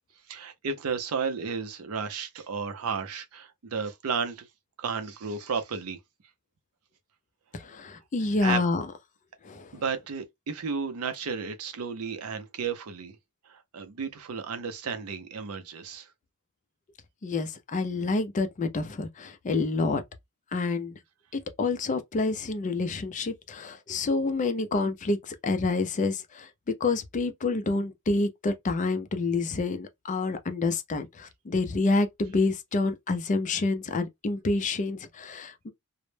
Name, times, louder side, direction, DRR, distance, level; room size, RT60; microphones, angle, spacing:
voice 1, 0.3-4.5 4.8-6.0 8.4-8.6 9.7-13.2 13.5-16.1, right 5 dB, 70° right, 0.5 m, -33 dB
voice 2, 7.6-8.8 9.4-9.8 17.2-20.0 20.5-20.9 21.6-26.5 26.8-35.7, left 3 dB, 35° left, 0.4 m, -28 dB
2.0 x 2.0 x 3.1 m
head